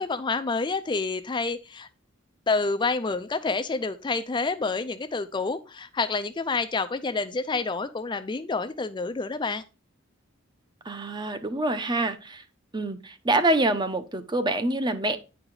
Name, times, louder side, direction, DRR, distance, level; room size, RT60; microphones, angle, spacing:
voice 1, 0.0-1.9 2.5-9.6, left 4 dB, 25° left, 10 dB, 0.4 m, -28 dB
voice 2, 10.8-12.4 12.7-15.2, right 2 dB, 20° right, 10 dB, 0.8 m, -26 dB
9.7 x 4.8 x 3.8 m, 0.30 s
head